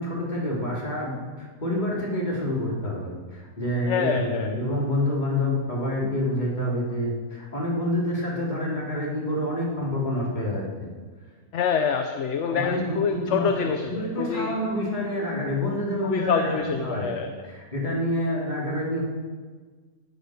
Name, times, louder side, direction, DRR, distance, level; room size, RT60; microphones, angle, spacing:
voice 1, 0.0-10.9 12.5-17.1 17.4-19.0, left 1 dB, 30° left, -4 dB, 3.6 m, -28 dB
voice 2, 3.8-4.6 6.0-6.1 11.5-14.6 16.0-17.5, left 6 dB, 55° left, 6 dB, 1.0 m, -26 dB
15.5 x 9.9 x 6.4 m, 1.5 s
omnidirectional pair, 1.6 m